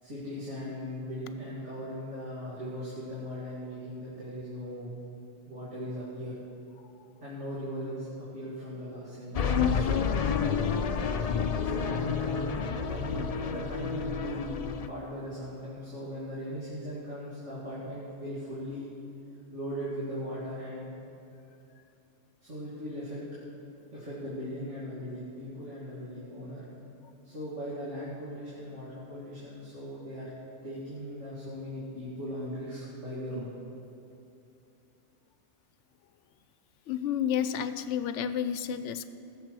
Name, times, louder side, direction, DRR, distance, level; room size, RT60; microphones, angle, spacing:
voice 1, 0.0-5.0 5.5-6.4 7.2-10.7 11.5-18.9 19.5-20.9 22.4-23.2 23.9-26.6 27.2-30.3 30.6-33.5, equal, 80° right, -10 dB, 2.8 m, -39 dB
sound 1, 9.3-14.9, left 6 dB, 50° left, 0.5 m, -29 dB
voice 2, 36.9-39.1, left 9 dB, 80° left, 11 dB, 0.9 m, -30 dB
20.0 x 6.9 x 4.8 m, 2.8 s
omnidirectional pair, 1.2 m